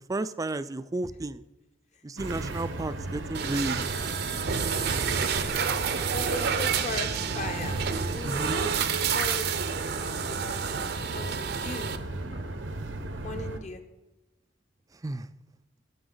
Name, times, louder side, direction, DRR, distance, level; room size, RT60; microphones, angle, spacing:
voice 1, 0.1-1.4 2.0-3.8 8.2-8.6 15.0-15.3, right 2 dB, 20° right, 14 dB, 0.4 m, -32 dB
sound 1, 2.2-13.6, right 2 dB, 85° right, 1.0 m, -36 dB
sound 2, 3.3-12.0, right 6 dB, 60° right, 0.7 m, -29 dB
voice 2, 6.1-7.8 8.1-9.5 9.9-11.9 12.3-12.6 13.2-13.8, left 2 dB, 40° left, 7 dB, 1.1 m, -38 dB
15.0 x 6.9 x 3.9 m, 1.1 s
head